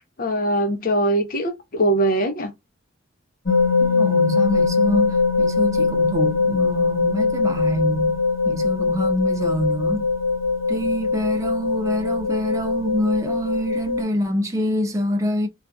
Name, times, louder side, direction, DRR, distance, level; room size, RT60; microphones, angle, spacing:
voice 1, 0.2-2.5, right 1 dB, 45° left, 0.6 m, -21 dB
sound 1, 3.5-14.0, left 4 dB, 65° left, 1.2 m, -21 dB
voice 2, 3.8-8.2 8.4-10.1 10.7-15.5, equal, 15° right, 0.4 m, -25 dB
2.6 x 2.3 x 2.3 m
head